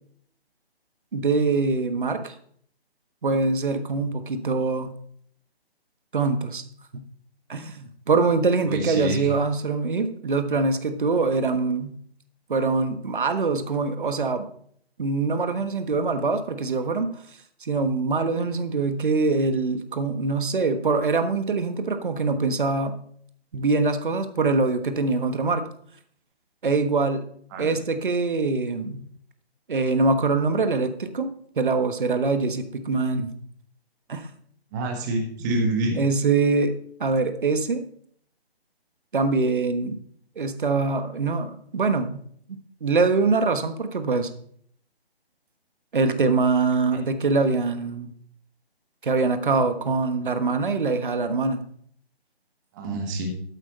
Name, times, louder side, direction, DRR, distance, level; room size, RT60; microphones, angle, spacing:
voice 1, 1.1-2.3 3.2-4.9 6.1-6.6 6.9-7.0 7.5-11.9 12.5-14.5 15.0-17.1 17.6-23.0 23.5-25.6 26.6-27.3 27.6-29.1 29.7-31.3 31.6-33.3 34.1-34.3 35.9-37.8 39.1-40.0 40.4-42.2 42.5-44.3 45.9-48.1 49.0-51.6, right 4 dB, 50° right, 9 dB, 1.4 m, -24 dB
voice 2, 8.6-9.3 27.5-27.8 34.7-36.0 52.7-53.3, right 2 dB, 15° right, 3 dB, 1.7 m, -27 dB
14.0 x 8.2 x 4.2 m, 0.62 s
figure-of-eight pair, 145°, 32 cm